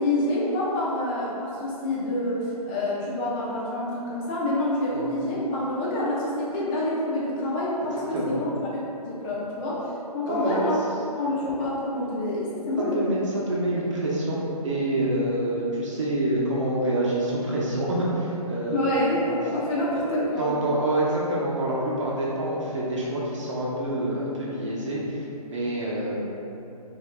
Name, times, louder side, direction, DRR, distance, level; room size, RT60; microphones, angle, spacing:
voice 1, 0.0-10.8 11.2-13.1 18.7-20.5, left 1 dB, 15° left, -6 dB, 0.5 m, -27 dB
voice 2, 10.3-10.6 12.9-13.2 13.5-14.4 14.6-19.3 19.9-26.2, right 1 dB, 50° right, -5 dB, 0.8 m, -27 dB
5.6 x 2.6 x 2.2 m, 2.9 s
hypercardioid pair, 150°, 20 cm